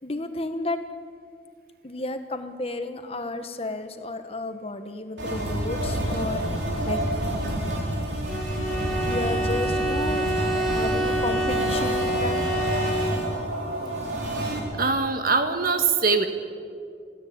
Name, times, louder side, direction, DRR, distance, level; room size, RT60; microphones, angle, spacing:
voice 1, 0.0-0.8 1.8-7.0 9.0-10.3 10.7-12.4, left 2 dB, 35° left, 8 dB, 1.4 m, -32 dB
sound 1, 5.2-14.6, right 1 dB, 90° right, 4.7 m, -28 dB
Bowed string instrument, 8.3-13.5, right 1 dB, ahead, 5.1 m, -28 dB
voice 2, 14.7-16.3, right 4 dB, 55° right, 7 dB, 1.8 m, -22 dB
25.0 x 16.0 x 8.7 m, 2.3 s
head